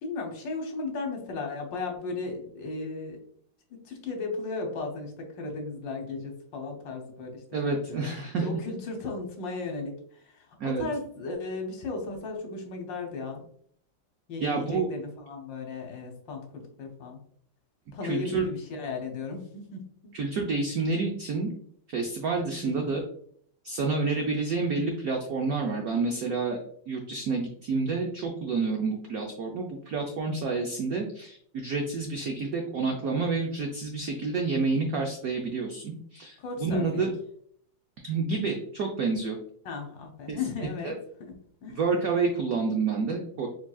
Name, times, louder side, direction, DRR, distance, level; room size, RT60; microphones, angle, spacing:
voice 1, 0.0-3.2 3.7-8.1 8.4-13.5 14.3-17.2 17.9-20.2 22.6-23.0 36.4-37.1 39.6-41.3 41.6-41.8, left 3 dB, 65° left, 2 dB, 1.5 m, -36 dB
voice 2, 7.5-8.4 10.6-10.9 14.4-14.9 18.0-18.4 20.1-21.5 21.9-23.0 23.6-26.6 26.9-36.3 36.6-37.1 38.0-39.4 40.3-40.4 40.8-40.9 41.8-43.5, right 4 dB, 90° right, 2 dB, 0.7 m, -29 dB
4.5 x 4.2 x 2.3 m, 0.63 s
omnidirectional pair, 2.3 m